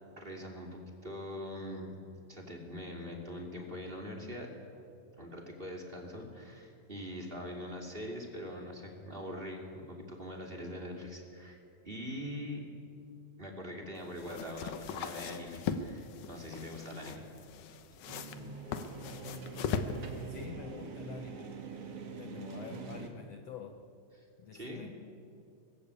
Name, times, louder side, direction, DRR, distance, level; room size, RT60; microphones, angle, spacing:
voice 1, 0.2-2.0 2.3-4.5 5.2-12.6 13.4-17.3 24.1-24.3 24.5-24.9, equal, 15° right, 2 dB, 2.5 m, -43 dB
sound 1, 14.0-20.4, left 6 dB, 65° left, 2.2 m, -39 dB
sound 2, 18.1-23.1, right 4 dB, 50° right, 2.4 m, -44 dB
voice 2, 20.3-21.5 22.2-23.8 24.4-24.9, left 7 dB, 85° left, 7 dB, 1.4 m, -47 dB
24.5 x 19.0 x 8.4 m, 2.5 s
omnidirectional pair, 4.3 m